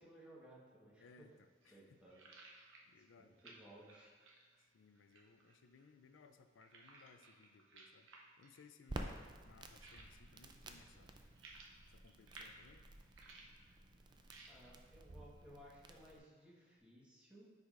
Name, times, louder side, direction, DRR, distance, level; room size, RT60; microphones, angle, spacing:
voice 1, 0.0-1.3 1.7-2.2 3.2-4.1 14.5-17.5, right 1 dB, 5° right, -6 dB, 1.3 m, -60 dB
voice 2, 1.0-2.0 2.9-3.3 4.7-8.1 8.4-11.1 11.9-12.8, left 4 dB, 80° left, 9 dB, 0.4 m, -64 dB
sound 1, 1.1-16.8, right 3 dB, 85° right, 0.8 m, -63 dB
Crackle, 8.9-16.2, right 2 dB, 25° right, 0.4 m, -52 dB
9.4 x 4.9 x 2.5 m, 1.5 s
head